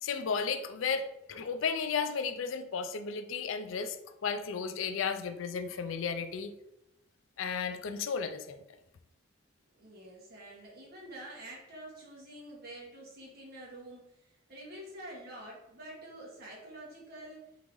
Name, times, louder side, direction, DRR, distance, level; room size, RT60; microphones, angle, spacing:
voice 1, 0.0-4.0 4.2-6.5 7.4-8.6, left 6 dB, 85° left, 9 dB, 0.4 m, -34 dB
voice 2, 9.7-17.4, right 1 dB, 55° right, -4 dB, 1.5 m, -47 dB
3.8 x 3.7 x 3.1 m, 0.87 s
head